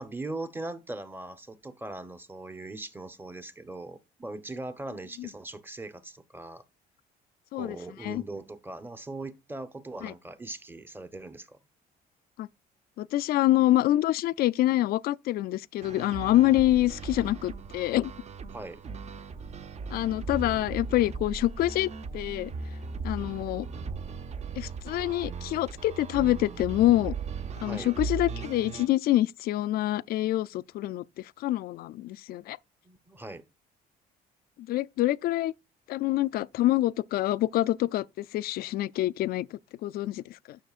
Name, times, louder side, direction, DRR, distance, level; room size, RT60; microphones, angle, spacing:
voice 1, 0.0-6.6 7.5-11.6 18.5-18.8 27.6-27.9 32.8-33.4, right 2 dB, 10° right, 0.9 m, -40 dB
voice 2, 13.0-18.1 19.9-22.5 23.0-23.7 24.6-27.1 27.6-31.0 31.4-32.6 34.6-35.5 35.9-40.6, left 15 dB, 65° left, 0.4 m, -26 dB
sound 1, 15.8-28.9, right 4 dB, 40° right, 0.8 m, -38 dB
10.0 x 6.3 x 2.4 m
cardioid pair, 110°, 17 cm